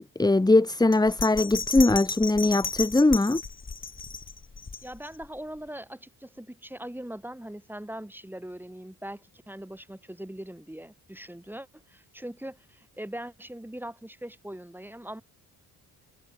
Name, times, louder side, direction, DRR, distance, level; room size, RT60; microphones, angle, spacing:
voice 1, 0.0-3.4, left 2 dB, 10° left, 1.1 m, -21 dB
Bell, 0.9-5.3 5.7-5.8, left 4 dB, 30° left, 4.3 m, -34 dB
voice 2, 4.8-15.2, right 1 dB, 5° right, 5.0 m, -41 dB
cardioid pair, 75°, 38 cm